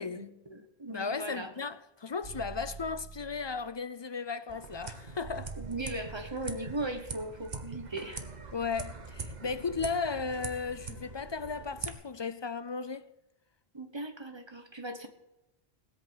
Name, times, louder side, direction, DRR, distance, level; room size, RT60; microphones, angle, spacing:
voice 1, 0.0-1.5 5.6-8.2 13.7-15.1, right 2 dB, 25° right, 1.2 m, -38 dB
voice 2, 0.9-5.6 8.5-13.1, left 5 dB, 40° left, 0.4 m, -35 dB
sound 1, 2.2-3.7 5.2-6.7, right 5 dB, 75° right, 3.4 m, -46 dB
sound 2, 4.5-11.9, right 3 dB, 45° right, 1.2 m, -43 dB
17.0 x 8.2 x 7.9 m
omnidirectional pair, 1.0 m